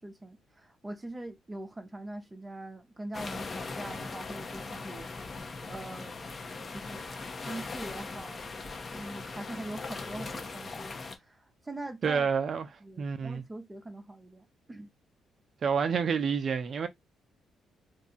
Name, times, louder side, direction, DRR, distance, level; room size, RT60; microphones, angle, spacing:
voice 1, 0.0-5.3 5.7-6.2 6.6-7.1 7.4-8.5 8.9-12.3 12.8-14.9, right 2 dB, 15° right, 0.8 m, -43 dB
sound 1, 3.1-11.1, left 3 dB, 35° left, 0.9 m, -40 dB
voice 2, 12.0-12.7 13.0-13.4 15.6-16.9, right 6 dB, 50° right, 0.5 m, -28 dB
2.6 x 2.3 x 4.0 m
cardioid pair, 90°, 0 cm